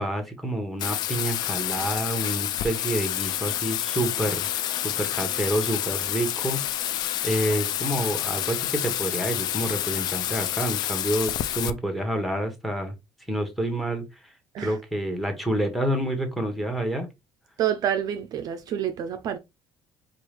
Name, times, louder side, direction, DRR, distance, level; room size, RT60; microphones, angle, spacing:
voice 1, 0.0-4.5 4.7-6.9 7.2-12.9 13.3-14.3 14.6-17.1, right 1 dB, ahead, 0.9 m, -28 dB
Bathtub (filling or washing), 0.8-11.7, left 12 dB, 50° left, 0.3 m, -28 dB
voice 2, 17.6-19.4, right 10 dB, 45° right, 0.4 m, -28 dB
4.6 x 2.4 x 3.2 m
cardioid pair, 170°, 9 cm